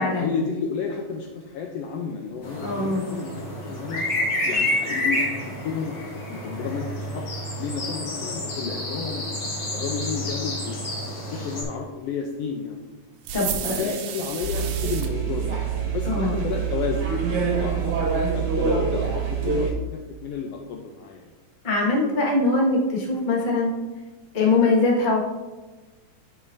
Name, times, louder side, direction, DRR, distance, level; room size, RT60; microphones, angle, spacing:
voice 1, 0.0-4.0 4.4-7.3 7.6-9.3 9.7-10.8 11.1-12.8 13.6-15.6 15.9-21.3, left 6 dB, 80° left, 1 dB, 1.5 m, -32 dB
sound 1, 2.4-11.6, left 1 dB, 45° left, 1.9 m, -29 dB
voice 2, 2.6-3.1 13.3-14.0 16.1-16.3 21.6-23.7 24.3-25.2, left 3 dB, 30° left, -3 dB, 0.9 m, -22 dB
sound 2, 13.2-15.1, right 9 dB, 90° right, 2.1 m, -32 dB
sound 3, 14.4-19.7, right 6 dB, 60° right, 1.8 m, -25 dB
9.7 x 5.4 x 2.6 m, 1.2 s
omnidirectional pair, 3.3 m